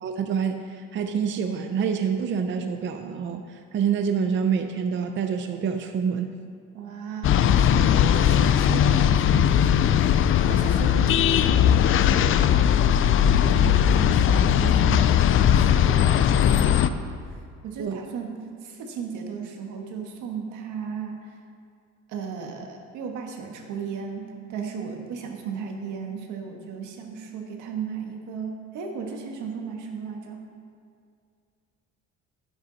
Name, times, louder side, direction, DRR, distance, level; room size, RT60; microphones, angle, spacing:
voice 1, 0.0-6.3 17.8-18.0, right 7 dB, 40° right, 6 dB, 0.6 m, -27 dB
voice 2, 6.7-10.1 10.5-12.9 13.4-17.1 17.6-18.4 18.6-21.4 22.1-30.4, right 6 dB, 80° right, 2 dB, 1.7 m, -35 dB
sound 1, 7.2-16.9, left 9 dB, 45° left, 0.4 m, -19 dB
12.5 x 9.9 x 4.1 m, 2.3 s
cardioid pair, 150°, 29 cm